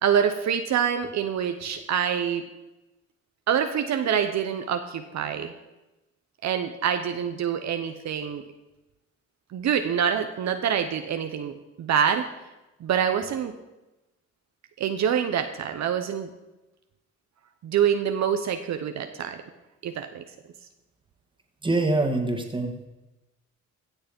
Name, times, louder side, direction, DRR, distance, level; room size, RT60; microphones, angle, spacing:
voice 1, 0.0-2.5 3.5-5.5 6.4-8.4 9.5-12.3 12.8-13.5 14.8-16.3 17.6-19.4 19.8-20.2, right 8 dB, 65° right, 7 dB, 0.9 m, -26 dB
voice 2, 21.6-22.9, right 2 dB, 15° right, 4 dB, 1.9 m, -25 dB
16.0 x 6.6 x 5.3 m, 1.0 s
cardioid pair, 90°, 30 cm